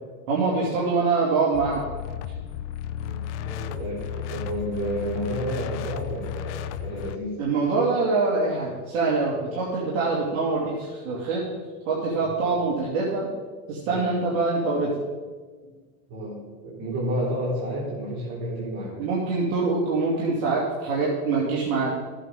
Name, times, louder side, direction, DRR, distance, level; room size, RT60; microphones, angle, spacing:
voice 1, 0.3-1.8 7.4-11.4 11.9-13.3 13.7-14.9 19.0-21.9, right 3 dB, 65° right, -6 dB, 2.6 m, -24 dB
sound 1, 1.5-7.2, left 10 dB, 55° left, 0.6 m, -34 dB
voice 2, 3.0-7.4 13.8-14.1 15.6-15.7 16.1-19.0, equal, 45° right, -7 dB, 3.3 m, -31 dB
14.0 x 8.3 x 3.8 m, 1.4 s
supercardioid pair, 150°, 42 cm